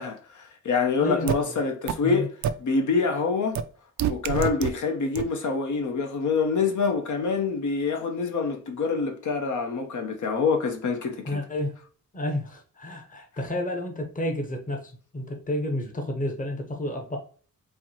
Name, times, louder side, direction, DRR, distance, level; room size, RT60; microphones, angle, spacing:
voice 1, 0.0-2.3 2.6-3.6 4.1-11.4, left 4 dB, 65° left, 0.8 m, -26 dB
voice 2, 1.0-1.5 2.0-2.3 11.2-11.7 12.1-17.2, left 1 dB, 25° left, 0.9 m, -31 dB
sound 1, 1.3-1.4 1.9-2.0 2.4-2.5 3.6-3.7 4.0-4.7 5.2-5.3, right 9 dB, 60° right, 0.4 m, -25 dB
4.5 x 2.7 x 2.8 m
wide cardioid pair, 125°, 32 cm